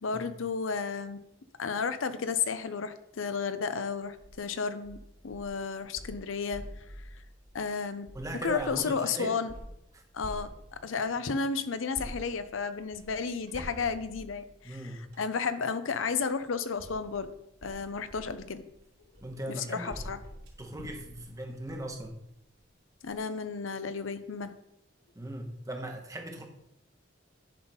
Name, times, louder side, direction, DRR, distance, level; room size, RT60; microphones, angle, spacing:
voice 1, 0.0-1.2 1.6-5.0 5.2-6.8 7.5-8.1 8.4-9.5 10.1-17.3 17.6-18.6 19.5-20.2 23.0-24.5, left 5 dB, 85° left, 11 dB, 0.6 m, -32 dB
sound 1, 4.0-4.4 4.8-8.9 9.5-11.0 11.9-15.3 16.3-22.2 22.6-22.7 23.0-23.2, equal, 55° right, 2.8 m, -48 dB
voice 2, 8.1-9.4 9.9-10.0 14.6-15.1 19.2-20.0 20.6-22.2 25.1-26.5, right 1 dB, 15° right, 3 dB, 1.1 m, -39 dB
10.5 x 4.0 x 5.5 m, 0.80 s
head